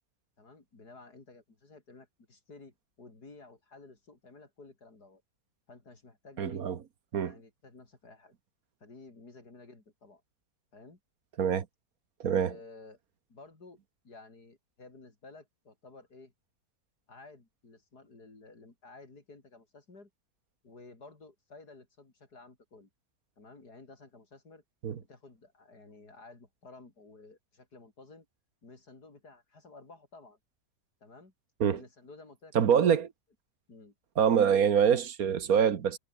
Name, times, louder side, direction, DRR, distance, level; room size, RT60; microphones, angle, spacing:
voice 1, 0.4-5.2 5.7-6.7 7.1-8.3 8.8-10.2 10.7-11.0 12.2-13.0 13.3-13.8 14.0-16.3 17.1-20.1 20.6-22.9 23.4-24.6 25.0-28.3 28.6-30.4 31.0-31.3 31.7-32.9 33.7-33.9, left 3 dB, 80° left, 5.0 m, -53 dB
voice 2, 6.4-6.8 7.1-7.3 11.4-11.7 12.2-12.5 24.8-25.0 31.6-31.8 32.5-33.1 34.2-36.0, right 8 dB, 65° right, 1.6 m, -25 dB
omnidirectional pair, 1.7 m